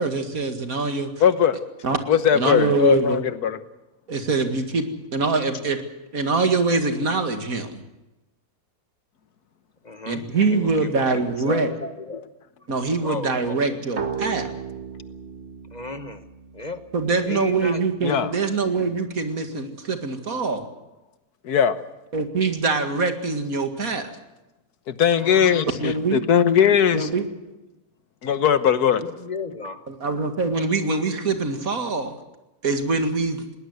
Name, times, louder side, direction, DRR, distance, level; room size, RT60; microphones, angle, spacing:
voice 1, 0.0-1.1 1.8-2.0 2.3-3.2 4.1-5.8 6.1-7.7 10.1-11.7 12.7-14.5 16.9-20.7 22.1-24.1 25.8-26.2 26.9-27.2 29.9-32.1 32.6-33.4, right 4 dB, 65° right, 7 dB, 2.5 m, -24 dB
voice 2, 1.2-1.6 2.1-3.6 18.0-18.3 21.4-21.8 24.9-27.1 28.2-29.0, left 8 dB, 85° left, 12 dB, 1.7 m, -19 dB
voice 3, 9.8-12.3 13.0-13.8 15.7-16.2 16.5-16.8 17.3-17.8 25.2-25.6 28.7-29.9, left 3 dB, 30° left, 10 dB, 1.3 m, -35 dB
sound 1, 14.0-17.4, right 7 dB, 45° right, 2.1 m, -35 dB
21.0 x 18.5 x 8.0 m, 1.0 s
omnidirectional pair, 1.6 m